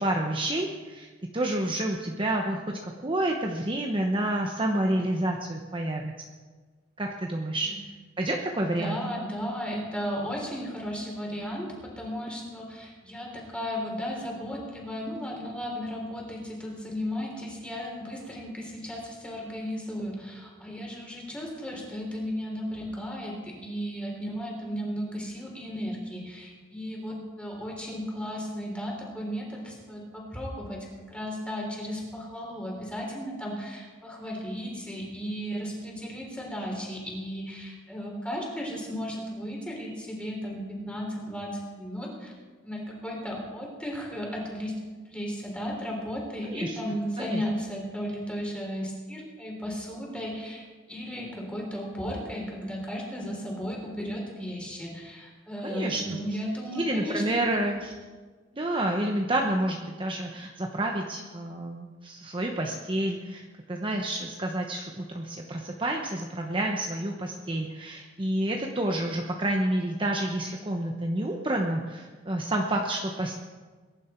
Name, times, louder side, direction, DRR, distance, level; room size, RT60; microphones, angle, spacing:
voice 1, 0.0-6.1 7.0-7.7 8.2-9.0 46.4-46.8 47.2-47.4 55.6-56.2 56.7-57.9 58.5-73.3, right 1 dB, 25° right, 1 dB, 1.0 m, -29 dB
voice 2, 8.6-42.3 42.6-44.8 45.1-57.6, equal, 5° left, -2 dB, 3.7 m, -35 dB
22.0 x 11.0 x 4.5 m, 1.4 s
head